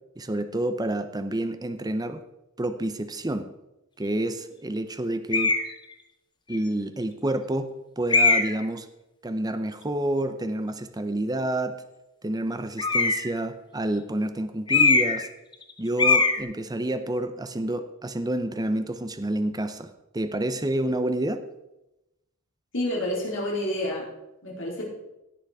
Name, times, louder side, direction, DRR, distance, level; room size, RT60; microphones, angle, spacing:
voice 1, 0.2-2.2 2.6-3.5 4.0-5.5 6.5-8.9 9.2-11.8 12.2-15.3 15.8-21.4, right 1 dB, 20° right, 10 dB, 0.7 m, -29 dB
sound 1, 5.3-5.7 6.5-6.6 8.1-8.6 12.8-13.4 14.7-15.3 15.5-15.7 16.0-16.4, left 4 dB, 20° left, 1.0 m, -21 dB
voice 2, 22.7-24.1 24.4-24.9, left 1 dB, 65° left, -4 dB, 4.0 m, -28 dB
17.0 x 6.1 x 4.8 m, 0.92 s
head